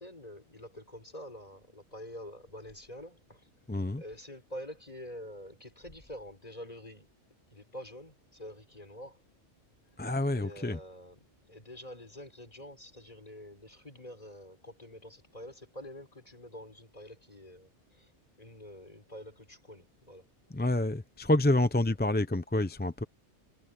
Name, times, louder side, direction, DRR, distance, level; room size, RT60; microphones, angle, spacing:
voice 1, 0.0-3.5 3.9-7.1 7.5-9.2 10.0-18.1 18.4-20.3, equal, 35° left, 5.1 m, -47 dB
voice 2, 3.7-4.0 10.0-10.8 20.5-23.0, left 1 dB, 10° left, 0.5 m, -28 dB
omnidirectional pair, 1.2 m